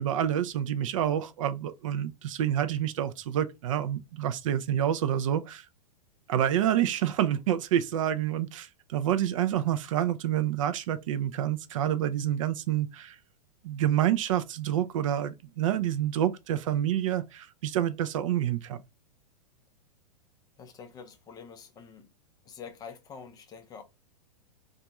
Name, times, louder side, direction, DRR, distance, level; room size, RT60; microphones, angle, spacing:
voice 1, 0.0-5.7 6.3-13.2 13.6-18.8, right 11 dB, 50° right, 0.4 m, -28 dB
voice 2, 20.6-22.1 22.4-23.8, left 6 dB, 20° left, 0.4 m, -46 dB
2.5 x 2.4 x 2.9 m
figure-of-eight pair, 105°, 21 cm